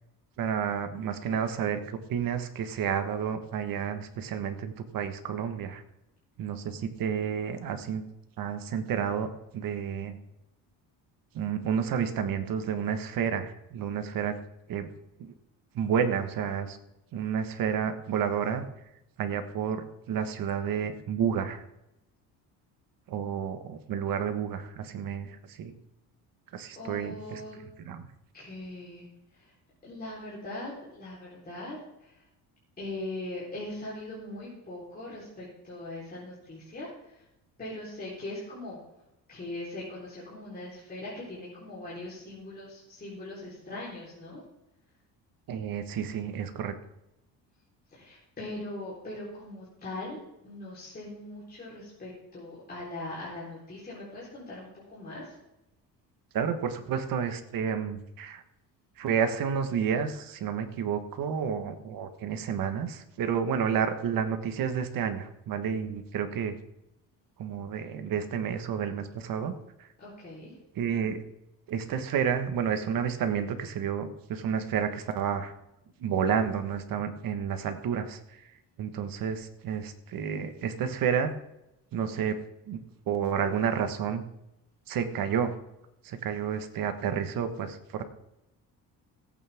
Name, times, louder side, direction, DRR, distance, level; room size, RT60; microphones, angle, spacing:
voice 1, 0.4-5.8 6.4-8.0 8.4-9.3 9.5-10.2 11.3-14.4 14.7-14.9 15.2-15.3 15.7-16.8 17.1-18.7 19.2-21.6 23.1-25.7 26.5-27.4 27.8-28.1 45.5-46.7 56.3-58.4 59.0-66.6 67.4-69.5 70.8-71.2 71.7-75.5 76.0-78.4 78.8-81.3 81.9-82.4 82.7-82.8 83.1-84.2 84.9-85.5 86.0-88.0, right 7 dB, 60° right, 8 dB, 1.5 m, -30 dB
voice 2, 26.7-27.6 28.3-29.1 29.3-29.5 29.8-32.2 32.8-37.2 37.6-38.8 39.3-44.4 47.9-50.2 50.4-55.4 70.0-70.5, left 2 dB, 25° left, -7 dB, 4.0 m, -40 dB
16.5 x 8.8 x 3.6 m, 0.89 s
cardioid pair, 140°, 39 cm